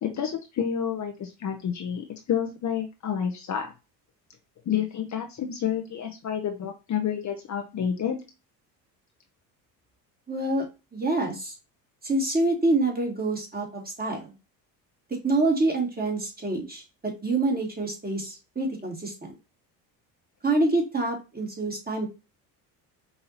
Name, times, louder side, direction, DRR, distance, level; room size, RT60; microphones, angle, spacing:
voice 1, 0.0-3.7 4.7-8.2, left 8 dB, 35° left, 4 dB, 0.8 m, -29 dB
voice 2, 10.3-10.7 10.9-11.5 12.0-14.3 15.2-19.4 20.4-22.1, right 2 dB, 20° right, 0 dB, 2.2 m, -26 dB
5.4 x 2.7 x 2.8 m, 0.28 s
hypercardioid pair, 65°, 48 cm